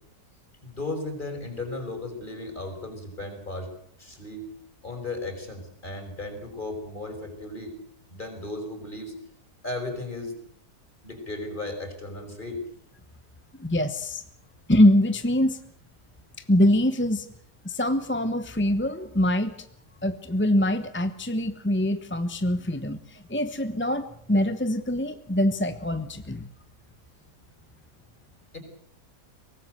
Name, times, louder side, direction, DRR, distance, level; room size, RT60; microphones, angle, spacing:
voice 1, 0.6-3.7 4.0-4.5 4.8-7.7 8.1-9.1 9.6-10.4 11.0-12.6 28.5-28.6, left 2 dB, 25° left, 6 dB, 5.5 m, -35 dB
voice 2, 13.5-14.2 14.7-15.6 16.5-17.3 17.6-19.6 20.0-26.5, left 1 dB, 10° left, 10 dB, 0.8 m, -24 dB
24.0 x 19.0 x 8.0 m, 0.67 s
omnidirectional pair, 1.8 m